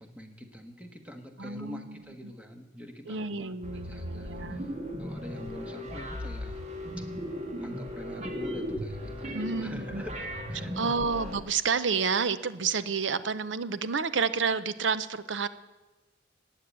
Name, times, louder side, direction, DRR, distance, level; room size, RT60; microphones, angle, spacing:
voice 1, 0.0-4.7 5.0-6.6 7.6-11.0, equal, 5° right, 4 dB, 1.4 m, -45 dB
voice 2, 1.4-2.0 2.2-2.3 3.1-4.7 9.3-10.0 10.8-15.5, right 5 dB, 85° right, 14 dB, 0.7 m, -30 dB
sound 1, 3.6-11.4, equal, 40° right, 1.9 m, -37 dB
15.5 x 9.2 x 8.5 m, 1.2 s
head